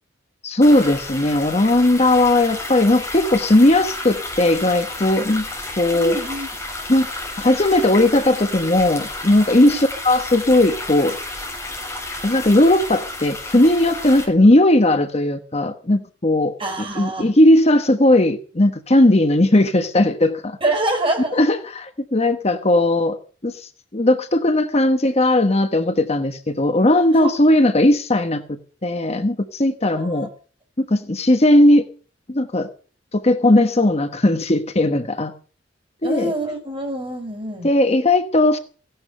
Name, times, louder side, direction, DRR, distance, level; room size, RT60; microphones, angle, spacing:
voice 1, 0.4-5.5 5.8-6.2 6.9-7.1 7.4-11.2 12.2-20.6 21.3-23.2 23.4-23.6 23.9-30.3 30.8-31.9 32.3-32.7 33.1-35.3 36.0-36.3 37.6-38.6, left 1 dB, 35° left, 1.2 m, -17 dB
sound 1, 0.6-14.2, left 2 dB, 15° left, 7.3 m, -31 dB
voice 2, 5.9-6.5 9.7-9.8 16.6-17.3 20.6-21.4 27.1-27.3 29.9-30.3 36.0-37.7, right 1 dB, 30° right, 5.2 m, -25 dB
16.5 x 11.5 x 6.7 m
head